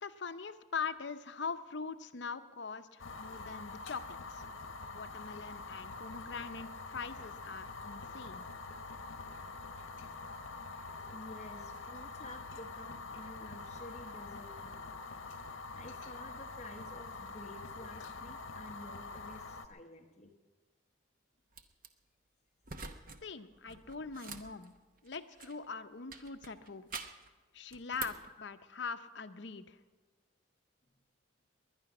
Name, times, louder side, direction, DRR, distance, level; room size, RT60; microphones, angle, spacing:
voice 1, 0.0-4.0 4.3-4.5 4.9-8.5 23.2-24.7 25.0-26.9 27.5-29.8, left 5 dB, 60° left, 10 dB, 0.7 m, -42 dB
Fire, 3.0-19.7, left 3 dB, 75° left, 1.0 m, -45 dB
voice 2, 11.1-15.0 15.7-20.3 24.2-24.3 25.4-25.5 28.2-28.3 30.9-31.0, left 1 dB, 35° left, 4 dB, 0.9 m, -51 dB
sound 1, 21.5-21.9 22.6-23.2 23.5-25.7 26.1-27.3 27.7-28.3, right 5 dB, 45° right, 0.9 m, -46 dB
20.5 x 10.5 x 6.0 m, 1.3 s
head